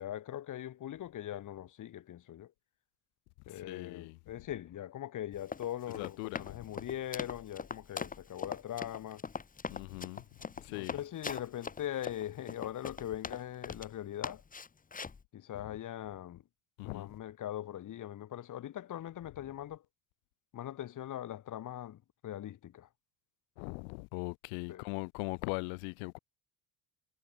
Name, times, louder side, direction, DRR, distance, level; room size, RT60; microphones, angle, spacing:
voice 1, 0.0-2.5 3.5-9.3 10.7-14.4 15.3-16.4 16.8-19.8 20.5-22.9 24.7-24.9, left 12 dB, 40° left, 3.8 m, -41 dB
voice 2, 3.6-4.2 6.0-6.6 9.7-10.3 10.6-11.0 15.6-15.7 16.8-17.1 23.6-26.2, left 38 dB, 80° left, 3.5 m, -40 dB
Run, 5.3-13.9 14.2-15.2, left 5 dB, 15° left, 3.1 m, -41 dB
cardioid pair, 150°, 48 cm